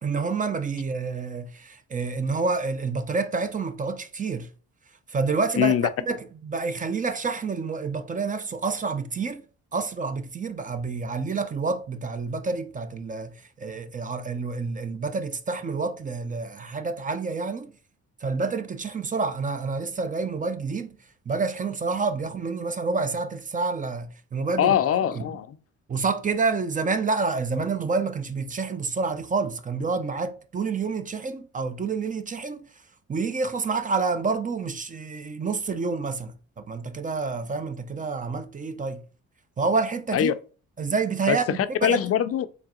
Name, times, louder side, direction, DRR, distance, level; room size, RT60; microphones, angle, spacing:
voice 1, 0.0-4.5 5.1-5.7 6.0-9.4 9.7-17.7 18.2-21.0 21.3-24.7 25.1-25.3 25.9-32.6 33.1-39.0 39.6-40.3 40.8-42.0, right 4 dB, 25° right, 0.5 m, -28 dB
voice 2, 5.6-5.9 24.6-25.6 40.1-40.3 41.3-41.4 41.8-42.5, left 10 dB, 50° left, 0.4 m, -22 dB
4.5 x 3.3 x 2.9 m
cardioid pair, 90°, 30 cm